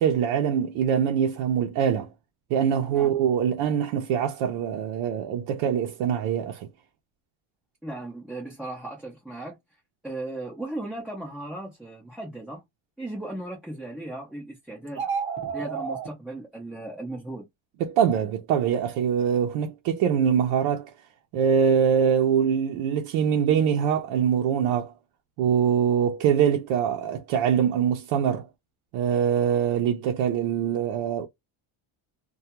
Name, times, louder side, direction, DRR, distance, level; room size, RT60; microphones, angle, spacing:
voice 1, 0.0-2.1 2.5-6.7 17.8-20.9 21.3-24.9 25.4-28.5 28.9-31.3, right 8 dB, 90° right, 0.6 m, -23 dB
voice 2, 7.8-9.6 10.0-12.6 13.0-15.1 15.5-17.5, right 2 dB, ahead, 0.4 m, -36 dB
sound 1, 14.9-16.1, right 6 dB, 25° right, 0.9 m, -30 dB
2.2 x 2.2 x 2.8 m
cardioid pair, 145°, 48 cm